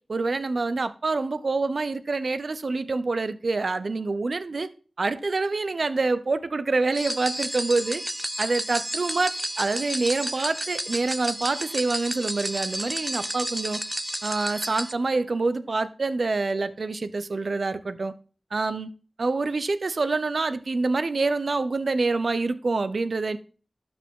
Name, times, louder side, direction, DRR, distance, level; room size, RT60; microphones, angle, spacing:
voice 1, 0.1-4.7 5.0-8.0 8.4-13.8 14.2-18.1 18.5-18.9 19.2-23.4, right 3 dB, 75° right, 0.7 m, -26 dB
sound 1, 6.9-14.9, right 1 dB, 15° right, 0.5 m, -31 dB
12.0 x 5.3 x 3.7 m
cardioid pair, 45°, 0 cm